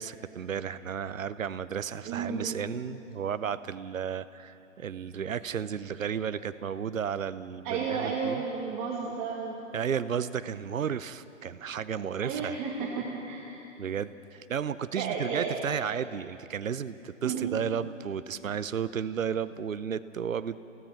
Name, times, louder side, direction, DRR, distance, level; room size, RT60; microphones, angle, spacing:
voice 1, 0.0-8.4 9.7-12.6 13.8-20.6, right 8 dB, 80° right, 14 dB, 0.7 m, -33 dB
voice 2, 2.1-2.6 7.6-9.7 12.2-13.6 15.0-15.6 17.2-17.7, right 5 dB, 30° right, -2 dB, 2.0 m, -33 dB
28.0 x 16.0 x 5.8 m, 2.8 s
figure-of-eight pair, 125°, 39 cm